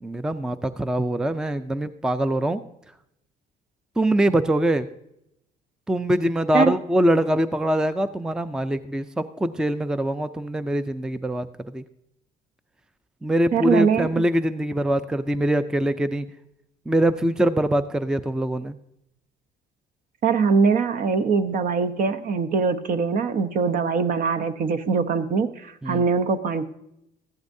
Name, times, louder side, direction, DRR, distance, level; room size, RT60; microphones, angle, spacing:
voice 1, 0.0-2.6 4.0-4.9 5.9-11.5 11.7-11.8 13.2-16.3 16.9-18.8 25.8-26.0, right 1 dB, 5° right, 12 dB, 0.4 m, -23 dB
voice 2, 13.5-14.2 20.2-26.7, right 5 dB, 55° right, 11 dB, 0.8 m, -22 dB
14.5 x 11.5 x 2.7 m, 0.81 s
cardioid pair, 110°, 17 cm